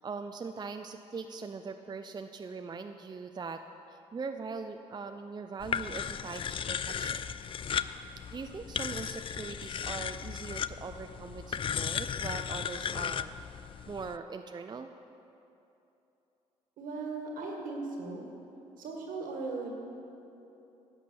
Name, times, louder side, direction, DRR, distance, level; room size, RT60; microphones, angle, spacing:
voice 1, 0.0-3.6 3.9-7.3 8.3-13.3 13.9-14.9, right 4 dB, 30° right, 7 dB, 0.5 m, -41 dB
sound 1, 5.6-14.2, left 7 dB, 40° left, 0.3 m, -36 dB
voice 2, 16.8-18.3 18.8-19.7, right 3 dB, 75° right, 1 dB, 1.7 m, -38 dB
11.0 x 6.1 x 6.9 m, 2.9 s
hypercardioid pair, 55°, 14 cm